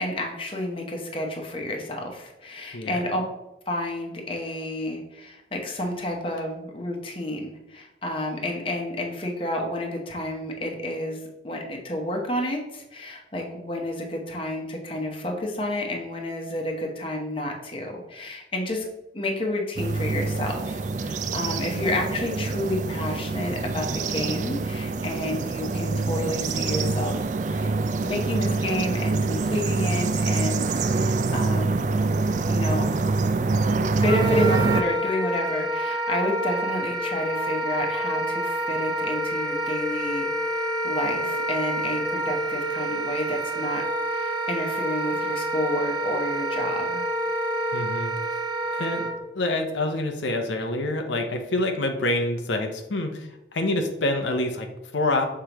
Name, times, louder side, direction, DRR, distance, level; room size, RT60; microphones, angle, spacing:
voice 1, 0.0-3.2 3.7-11.2 11.4-18.8 19.1-27.7 28.0-31.9 32.5-33.0 34.0-47.1, left 1 dB, 30° left, 1 dB, 1.0 m, -30 dB
sound 1, 19.8-34.8, right 3 dB, 40° right, 0.3 m, -25 dB
Wind instrument woodwind instrument, 34.0-49.1, right 1 dB, 25° right, 0.9 m, -28 dB
voice 2, 47.7-48.4 48.7-55.2, left 2 dB, 90° left, 4 dB, 0.8 m, -27 dB
6.7 x 4.8 x 3.0 m, 0.92 s
head